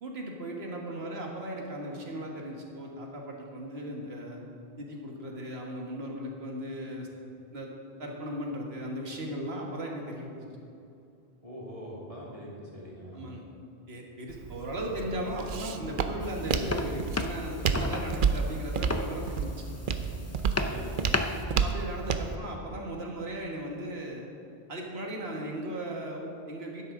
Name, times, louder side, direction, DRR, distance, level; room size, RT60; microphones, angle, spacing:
voice 1, 0.0-4.4 4.8-7.1 7.5-7.7 8.0-10.5 13.1-13.4 13.9-19.5 21.6-24.3 24.7-26.9, right 1 dB, 80° right, 0 dB, 1.8 m, -37 dB
voice 2, 11.4-13.3 20.5-21.0, equal, 35° right, -5 dB, 2.4 m, -43 dB
Walk footsteps, 14.3-22.4, right 6 dB, 60° right, 0.7 m, -31 dB
sound 1, 16.2-21.5, left 2 dB, 25° left, 0.3 m, -34 dB
12.0 x 10.0 x 3.8 m, 2.6 s
omnidirectional pair, 1.0 m